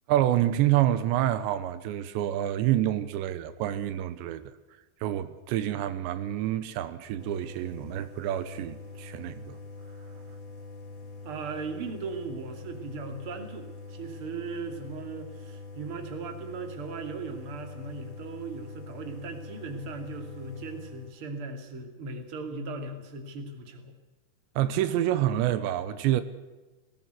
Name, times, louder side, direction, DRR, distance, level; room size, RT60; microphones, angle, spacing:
voice 1, 0.1-4.4 5.0-9.6 24.6-26.2, right 12 dB, 85° right, 3.2 m, -27 dB
sound 1, 7.2-21.1, left 3 dB, 35° left, 2.5 m, -44 dB
voice 2, 11.2-23.9, right 4 dB, 35° right, 2.8 m, -38 dB
18.5 x 17.5 x 8.1 m
omnidirectional pair, 5.1 m